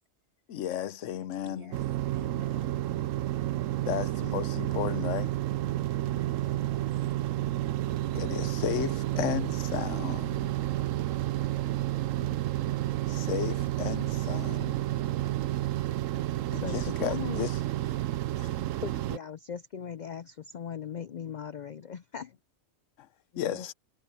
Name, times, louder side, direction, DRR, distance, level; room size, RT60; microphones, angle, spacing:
voice 1, 0.5-1.8 3.6-5.3 8.0-10.7 13.1-14.8 16.5-17.6 18.4-18.5 23.0-23.1 23.4-23.7, left 11 dB, 75° left, 1.0 m, -34 dB
voice 2, 1.4-3.1 6.0-6.9, equal, 55° right, 5.5 m, -49 dB
sound 1, 1.7-19.2, right 14 dB, 90° right, 1.0 m, -30 dB
voice 3, 12.1-12.4 16.5-17.5 18.8-22.3 23.3-23.7, left 8 dB, 55° left, 0.5 m, -39 dB
omnidirectional pair, 1.3 m